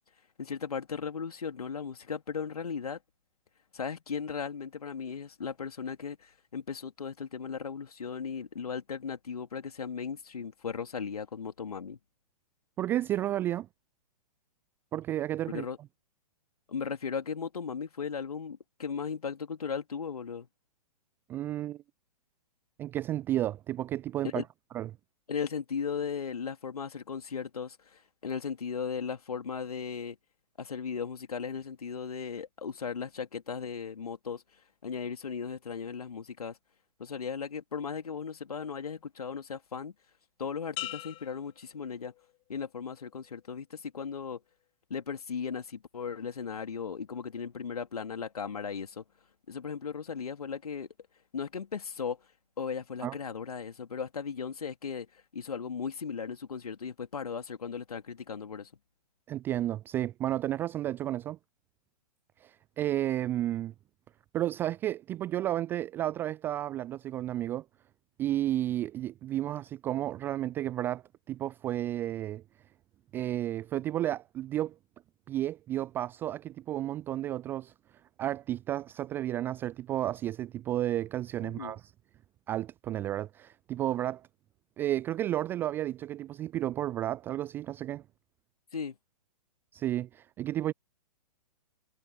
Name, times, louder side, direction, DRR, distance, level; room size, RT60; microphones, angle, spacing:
voice 1, 0.4-3.0 3.7-12.0 15.5-15.8 16.7-20.5 24.2-24.4 25.3-30.2 30.6-34.4 34.8-36.6 37.0-39.9 40.4-42.1 42.5-44.4 44.9-49.0 49.5-50.9 51.3-52.2 52.6-58.7 81.4-81.8 88.7-89.0, left 6 dB, 65° left, 3.3 m, -37 dB
voice 2, 12.8-13.7 14.9-15.7 21.3-21.8 22.8-24.4 24.7-24.9 53.0-53.1 59.3-61.4 62.4-63.7 64.3-67.6 68.2-72.4 73.1-74.7 75.3-77.7 78.2-81.8 82.5-84.3 84.8-88.0 89.7-90.7, right 13 dB, 10° right, 0.3 m, -32 dB
sound 1, 40.8-42.5 43.0-43.5, left 18 dB, 25° left, 2.0 m, -43 dB
figure-of-eight pair, 115°, 20 cm